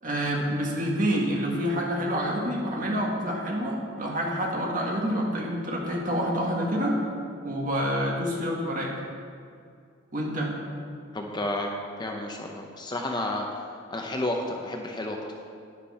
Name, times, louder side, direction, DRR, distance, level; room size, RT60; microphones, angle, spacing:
voice 1, 0.0-7.0 7.4-8.9 10.1-10.5, equal, 40° right, -2 dB, 1.8 m, -27 dB
voice 2, 11.1-11.7 12.0-13.5 13.9-15.2, left 1 dB, 20° left, 2 dB, 0.7 m, -31 dB
11.0 x 9.8 x 4.2 m, 2.3 s
head